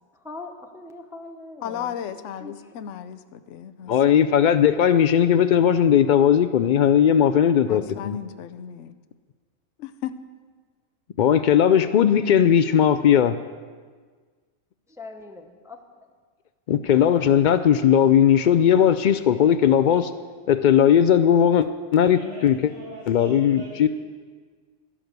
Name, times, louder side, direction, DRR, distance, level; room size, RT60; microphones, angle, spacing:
voice 1, 0.2-2.5 15.0-15.8, left 3 dB, 5° right, 4 dB, 0.7 m, -41 dB
voice 2, 1.6-3.9 7.7-8.9 9.8-10.2, left 9 dB, 70° left, 11 dB, 0.9 m, -35 dB
voice 3, 3.9-8.2 11.2-13.4 16.7-20.1 20.5-22.6 23.1-23.9, left 9 dB, 85° left, 12 dB, 0.4 m, -18 dB
voice 4, 21.9-23.9, right 1 dB, 50° right, -8 dB, 2.9 m, -41 dB
12.0 x 11.0 x 6.6 m, 1.5 s
omnidirectional pair, 1.4 m